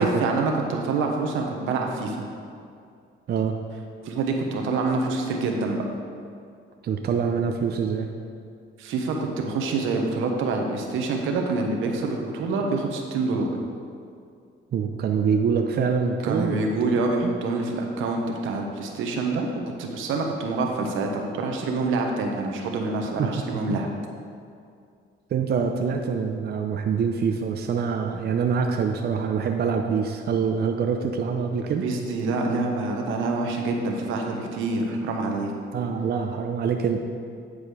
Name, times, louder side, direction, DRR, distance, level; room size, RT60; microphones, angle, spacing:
voice 1, 0.0-2.3 4.0-5.8 8.8-13.6 16.2-19.5 19.8-21.1 21.4-23.9 31.8-35.5, right 3 dB, 90° right, 2 dB, 1.0 m, -26 dB
voice 2, 6.8-8.1 14.7-16.7 17.2-17.3 23.2-23.3 23.7-23.8 25.3-31.8 35.7-37.0, right 6 dB, 55° right, 4 dB, 0.6 m, -25 dB
9.5 x 5.0 x 4.9 m, 2.3 s
cardioid pair, 90°, 20 cm